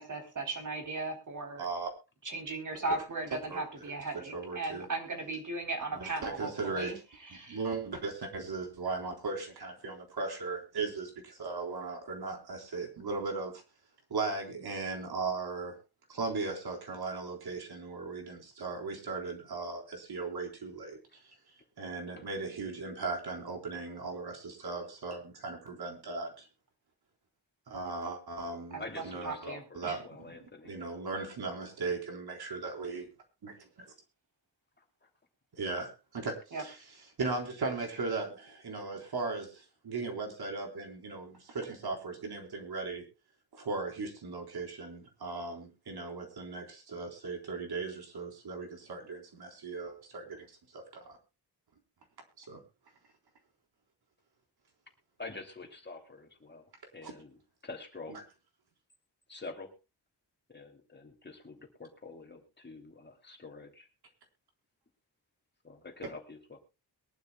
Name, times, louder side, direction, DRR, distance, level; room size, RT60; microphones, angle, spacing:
voice 1, 0.0-1.7 2.2-7.6 28.7-28.8 29.2-30.0 36.5-36.6, right 3 dB, 50° right, 4 dB, 3.9 m, -37 dB
voice 2, 1.6-1.9 2.8-3.0 3.5-3.6 4.3-4.9 5.9-6.9 7.5-13.6 14.1-15.8 16.1-21.0 21.8-26.5 27.7-30.0 30.6-33.1 33.4-33.7 35.6-36.8 37.2-43.0 43.5-50.4 50.7-51.2 52.4-52.6, right 3 dB, 70° right, 3 dB, 4.0 m, -37 dB
voice 3, 28.8-30.7 34.8-35.1 55.2-58.2 59.3-59.7 60.5-63.9 65.6-66.6, left 3 dB, 25° left, 4 dB, 2.7 m, -47 dB
22.5 x 12.0 x 2.3 m, 0.28 s
wide cardioid pair, 135°, 39 cm